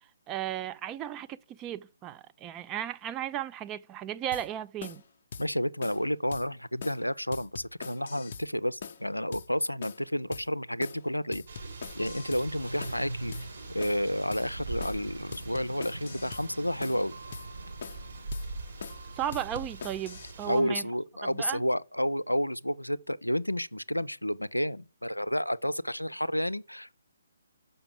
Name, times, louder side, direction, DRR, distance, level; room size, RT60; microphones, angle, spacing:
voice 1, 0.3-5.0 19.2-20.9 21.3-21.6, right 11 dB, 15° right, 0.4 m, -35 dB
sound 1, 4.3-4.5 4.8-5.0 5.3-5.5 5.8-6.0 6.3-6.5 6.8-7.0 7.3-8.5 8.8-9.0 9.3-9.5 9.8-10.0 10.3-10.5 10.8-11.0 11.3-12.5 12.8-13.0 13.3-13.5 13.8-14.0 14.3-14.5 14.8-15.0 15.3-16.5 16.8-17.0 17.3-17.5 17.8-18.1 18.3-18.5 18.8-19.0 19.3-20.3, left 5 dB, 45° left, 0.8 m, -42 dB
voice 2, 5.4-11.4 12.0-13.3 13.7-17.1 20.5-27.0, equal, 90° left, 0.4 m, -30 dB
sound 2, 11.5-20.6, right 3 dB, 55° right, 4.2 m, -42 dB
sound 3, 12.6-19.9, right 1 dB, 90° right, 0.7 m, -45 dB
6.9 x 5.5 x 6.6 m
figure-of-eight pair, 135°, 0 cm